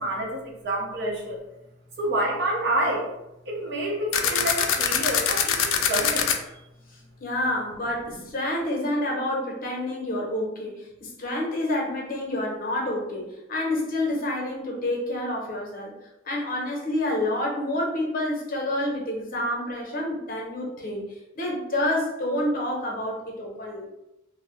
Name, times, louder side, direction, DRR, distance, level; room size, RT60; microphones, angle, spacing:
voice 1, 0.0-1.4 2.0-3.1 3.5-6.3, right 1 dB, 60° right, -1 dB, 0.7 m, -28 dB
sound 1, 4.1-6.4, left 7 dB, 80° left, 0.3 m, -23 dB
voice 2, 7.2-15.9 16.2-23.9, left 1 dB, 45° left, -1 dB, 0.8 m, -28 dB
2.8 x 2.0 x 3.0 m, 0.91 s
head